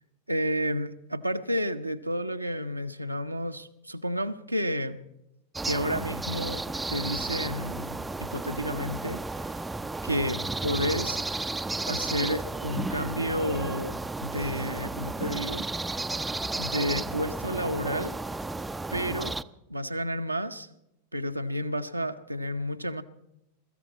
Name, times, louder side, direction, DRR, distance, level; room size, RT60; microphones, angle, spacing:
voice 1, 0.3-5.0 5.6-6.6 6.9-9.6 10.0-11.2 11.8-15.7 16.6-18.2 18.9-19.4 19.7-20.7 21.1-23.0, equal, 85° right, 0.8 m, -31 dB
sound 1, 5.5-19.4, right 2 dB, 10° right, 0.5 m, -33 dB
23.0 x 14.0 x 4.2 m
figure-of-eight pair, 90°, 0 cm